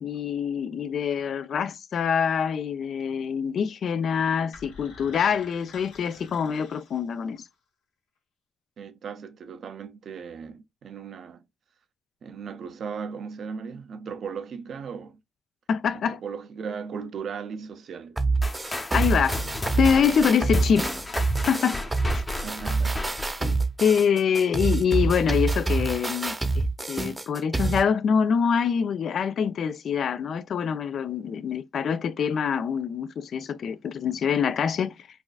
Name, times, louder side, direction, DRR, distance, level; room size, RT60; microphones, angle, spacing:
voice 1, 0.0-7.4 15.7-16.2 18.9-19.4 19.8-20.9 21.5-21.8 23.4-23.6 23.8-34.9, left 7 dB, 65° left, 0.3 m, -25 dB
sound 1, 4.5-7.5, left 4 dB, 90° left, 0.9 m, -48 dB
voice 2, 8.8-11.4 12.2-15.2 15.9-18.2 22.4-23.0, right 6 dB, 65° right, 0.4 m, -37 dB
sound 2, 18.2-27.8, right 3 dB, 20° right, 0.6 m, -26 dB
sound 3, 18.4-23.5, left 2 dB, 30° left, 0.7 m, -34 dB
4.1 x 2.4 x 2.3 m
supercardioid pair, 55°, 0 cm